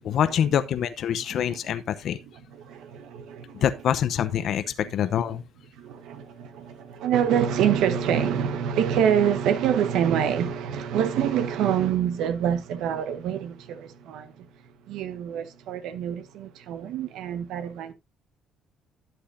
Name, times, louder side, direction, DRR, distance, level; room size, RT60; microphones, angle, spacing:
voice 1, 0.0-2.2 3.6-5.4, left 9 dB, 60° left, 0.7 m, -25 dB
voice 2, 1.2-1.6 2.5-3.7 4.8-5.0 5.3-5.4 5.8-14.5 14.9-17.9, right 8 dB, 80° right, 1.2 m, -26 dB
11.5 x 7.9 x 2.6 m
cardioid pair, 110°, 0 cm